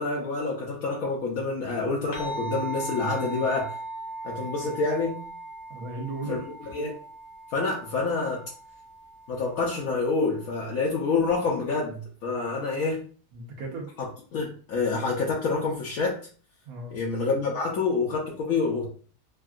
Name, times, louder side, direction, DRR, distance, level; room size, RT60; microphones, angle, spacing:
voice 1, 0.0-3.7 4.2-5.2 6.3-6.4 6.7-6.9 7.5-8.4 9.3-13.0 14.3-16.2 16.9-18.9, left 4 dB, 70° left, -3 dB, 1.0 m, -27 dB
sound 1, 2.1-10.8, right 2 dB, 45° left, 0.9 m, -39 dB
voice 2, 5.7-6.7 13.3-13.9 16.6-17.0, right 2 dB, 70° right, 1 dB, 1.3 m, -37 dB
3.5 x 2.2 x 2.4 m, 0.42 s
omnidirectional pair, 1.7 m